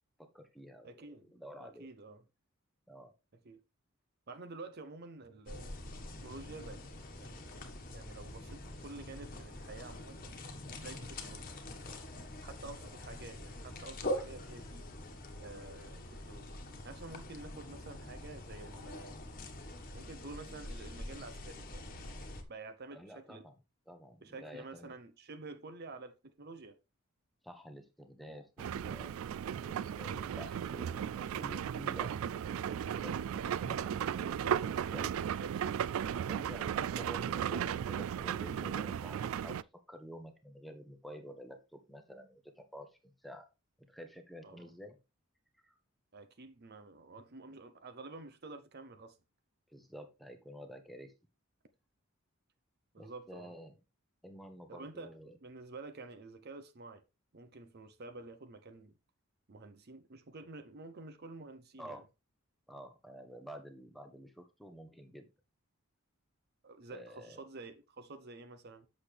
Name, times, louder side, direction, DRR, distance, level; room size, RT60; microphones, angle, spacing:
voice 1, 0.2-1.9 2.9-3.1 22.9-23.5 23.9-24.9 27.4-29.1 29.6-32.6 32.9-34.4 34.9-35.2 36.3-39.6 39.9-43.5 43.9-45.0 45.6-45.7 49.7-51.1 53.0-53.8 54.2-55.3 61.8-62.0 62.7-65.2 66.9-67.4, equal, ahead, 1.1 m, -50 dB
voice 2, 0.8-1.3 1.6-2.2 3.4-3.6 4.3-5.8 6.2-6.8 7.2-7.4 7.9-10.2 10.7-11.5 12.4-14.9 15.4-16.5 16.8-19.2 19.9-21.8 22.5-23.4 24.2-26.8 34.2-36.4 44.4-44.7 46.1-49.2 52.9-53.5 54.7-57.0 57.3-59.0 59.5-62.0 66.6-68.9, right 3 dB, 50° right, 0.7 m, -49 dB
sound 1, 5.5-22.4, left 1 dB, 40° left, 1.4 m, -44 dB
sound 2, 28.6-39.6, right 9 dB, 70° right, 0.3 m, -35 dB
8.1 x 6.4 x 3.3 m
head